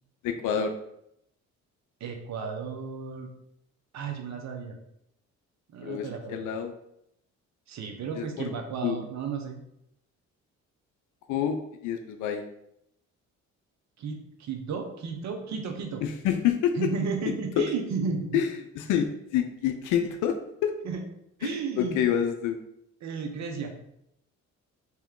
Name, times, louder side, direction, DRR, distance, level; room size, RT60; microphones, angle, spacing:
voice 1, 0.2-0.8 5.8-6.7 8.2-8.5 8.8-9.0 11.3-12.4 16.0-16.9 17.6-17.7 18.3-20.7 21.4-22.6, left 9 dB, 85° left, 7 dB, 0.5 m, -28 dB
voice 2, 2.0-3.3 3.9-4.8 5.7-6.5 7.7-9.6 14.0-16.0 16.8-18.4 20.8-21.0 21.4-22.0 23.0-23.7, right 5 dB, 65° right, 4 dB, 0.8 m, -33 dB
3.4 x 3.0 x 3.7 m, 0.77 s
cardioid pair, 90°, 30 cm